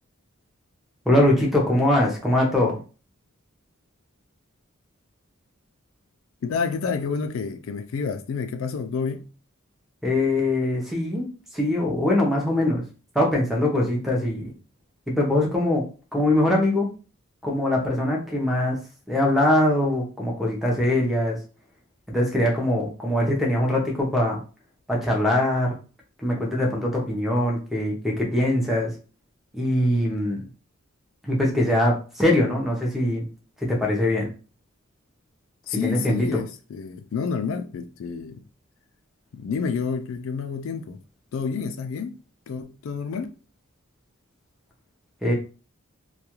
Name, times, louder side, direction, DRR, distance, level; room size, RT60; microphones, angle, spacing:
voice 1, 1.1-2.8 10.0-12.8 13.1-14.5 15.1-16.9 17.4-18.8 19.1-21.4 22.1-24.4 24.9-25.7 26.2-28.9 29.5-30.4 31.2-33.2 33.6-34.3 35.8-36.4 45.2-45.3, left 1 dB, ahead, 0.6 m, -22 dB
voice 2, 6.4-9.3 35.7-38.4 39.3-41.0 41.3-42.2 42.5-43.3, left 5 dB, 65° left, 0.3 m, -29 dB
2.3 x 2.2 x 2.9 m
head